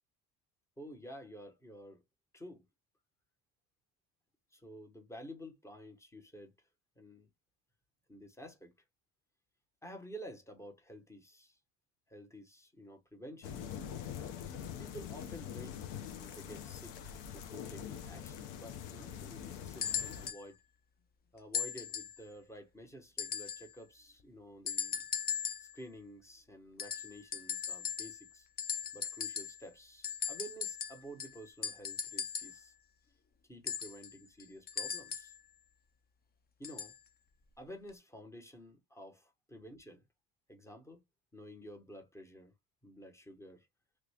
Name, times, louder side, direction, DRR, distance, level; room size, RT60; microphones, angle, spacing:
voice 1, 0.8-2.0 2.3-2.7 4.5-6.5 7.0-7.3 8.1-8.7 9.8-11.6 12.1-13.6 14.8-20.6 21.3-25.1 25.6-28.5 28.9-32.7 33.5-35.4 36.6-36.9 37.6-40.0 40.5-41.0 41.3-42.5 42.8-43.7, equal, 5° left, 1.0 m, -51 dB
sound 1, 13.4-20.3, left 9 dB, 85° left, 0.9 m, -44 dB
sound 2, 19.8-20.4 21.5-22.2 23.2-23.7 24.7-25.8 26.8-28.3 28.6-29.7 30.0-32.6 33.7-35.4 36.6-37.0 37.9-38.0, left 7 dB, 25° left, 0.3 m, -38 dB
3.2 x 2.4 x 3.4 m
cardioid pair, 110°, 41 cm